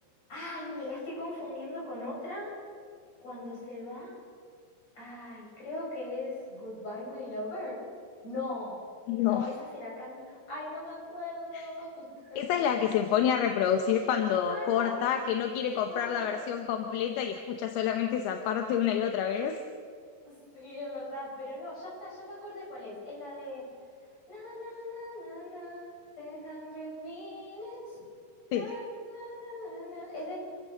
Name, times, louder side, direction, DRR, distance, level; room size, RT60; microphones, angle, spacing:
voice 1, 0.3-2.5 3.2-4.2 5.0-7.8 8.2-8.8 9.2-12.7 14.5-14.9 15.9-16.4 20.3-23.6 24.3-25.9 26.2-28.0 28.5-28.8 29.1-30.4, left 1 dB, 35° left, -5 dB, 8.7 m, -40 dB
voice 2, 9.1-9.5 11.5-11.7 12.4-19.6 28.5-28.7, left 9 dB, 70° left, 5 dB, 2.7 m, -28 dB
27.0 x 15.0 x 6.6 m, 2.1 s
omnidirectional pair, 5.3 m